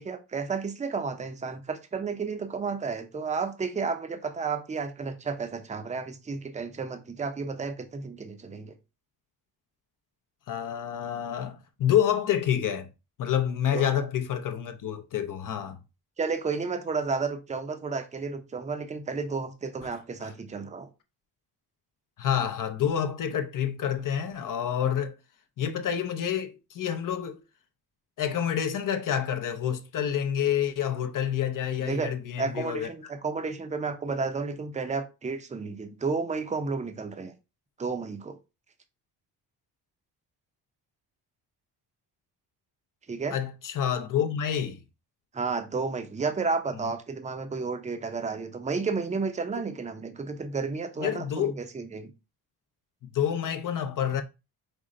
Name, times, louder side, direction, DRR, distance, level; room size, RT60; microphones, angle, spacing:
voice 1, 0.0-8.7 13.7-13.9 16.2-20.9 31.8-32.1 32.4-37.3 37.8-38.4 43.1-43.4 45.3-52.1, right 4 dB, 20° right, 0.6 m, -32 dB
voice 2, 10.5-12.9 13.2-15.8 22.2-25.1 25.6-27.4 28.2-32.9 43.3-44.8 51.0-51.5 53.0-54.2, left 9 dB, 50° left, 0.6 m, -28 dB
5.3 x 2.1 x 3.7 m
cardioid pair, 110°, 41 cm